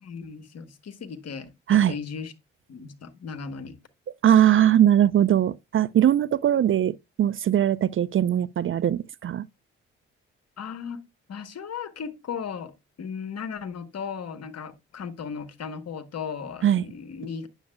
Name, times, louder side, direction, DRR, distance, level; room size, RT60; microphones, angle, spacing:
voice 1, 0.0-2.3 2.7-3.8 10.6-11.0 11.3-17.5, left 6 dB, 50° left, 1.2 m, -36 dB
voice 2, 4.2-9.4 16.6-16.8, right 10 dB, 40° right, 0.4 m, -20 dB
9.2 x 7.1 x 2.2 m
hypercardioid pair, 45°, 32 cm